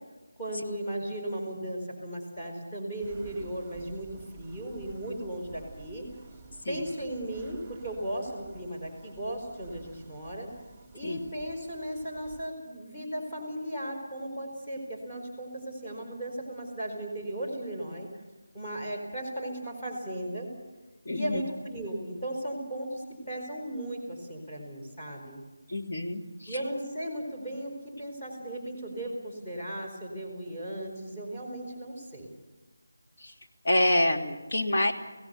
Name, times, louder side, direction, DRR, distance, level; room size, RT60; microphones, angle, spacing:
voice 1, 0.4-4.1 4.3-6.1 6.7-10.5 10.9-18.1 18.5-20.5 21.1-25.4 26.5-32.3, right 1 dB, 20° left, 2 dB, 4.6 m, -36 dB
sound 1, 3.0-12.5, right 5 dB, 5° right, 2.3 m, -51 dB
voice 2, 21.0-21.4 25.7-26.6 33.2-33.3 33.6-34.9, left 1 dB, 50° left, 1 dB, 2.8 m, -27 dB
30.0 x 17.0 x 6.9 m, 1.2 s
figure-of-eight pair, 165°, 0 cm